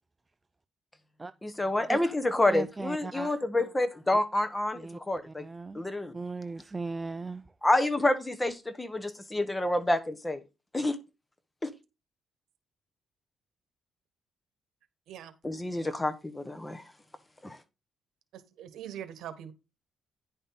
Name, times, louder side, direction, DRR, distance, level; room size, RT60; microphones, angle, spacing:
voice 1, 1.4-5.4 5.7-6.1 7.6-10.4 10.7-11.0 11.6-11.7 15.4-16.8 17.4-17.6, left 1 dB, 15° left, 1.1 m, -28 dB
voice 2, 2.5-3.3 4.8-5.0 5.3-5.8 6.1-7.4, right 3 dB, 15° right, 0.4 m, -37 dB
voice 3, 18.3-19.5, right 10 dB, 75° right, 1.5 m, -43 dB
10.0 x 5.4 x 4.1 m
cardioid pair, 115°, 0 cm